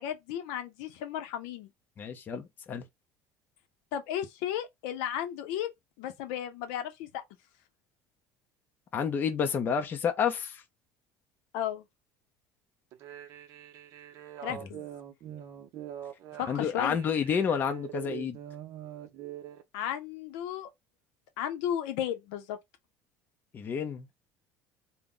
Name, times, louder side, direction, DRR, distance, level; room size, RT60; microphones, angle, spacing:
voice 1, 0.0-1.7 3.9-5.7 6.0-7.2 11.5-11.8 14.4-14.8 16.4-17.0 19.7-20.7 21.4-22.6, left 10 dB, 80° left, 0.5 m, -34 dB
voice 2, 2.0-2.8 8.9-10.6 14.5-14.6 16.5-18.4 23.5-24.1, left 7 dB, 30° left, 0.5 m, -30 dB
sound 1, 12.9-19.6, right 10 dB, 50° right, 0.5 m, -44 dB
2.2 x 2.0 x 3.6 m
cardioid pair, 140°, 7 cm